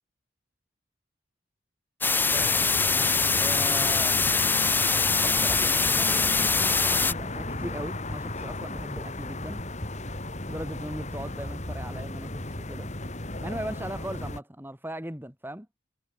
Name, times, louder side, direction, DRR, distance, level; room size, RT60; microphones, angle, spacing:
sound 1, 2.0-7.1, left 4 dB, 10° left, 0.4 m, -23 dB
sound 2, 2.3-14.4, left 2 dB, 35° left, 3.7 m, -35 dB
voice 1, 3.4-4.4 5.2-9.6 10.5-12.9 13.4-15.7, right 1 dB, 10° right, 6.6 m, -38 dB
head